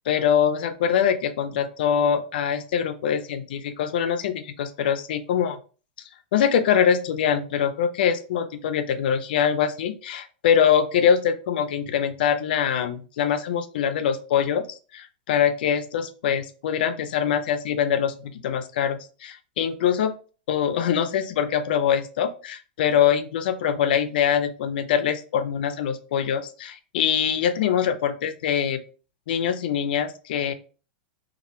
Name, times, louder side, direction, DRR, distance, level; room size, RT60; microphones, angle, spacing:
voice 1, 0.1-5.6 6.3-14.7 14.9-20.1 20.5-28.8 29.3-30.5, left 8 dB, 70° left, 10 dB, 0.3 m, -23 dB
2.2 x 2.1 x 2.9 m, 0.38 s
hypercardioid pair, 120°, 5 cm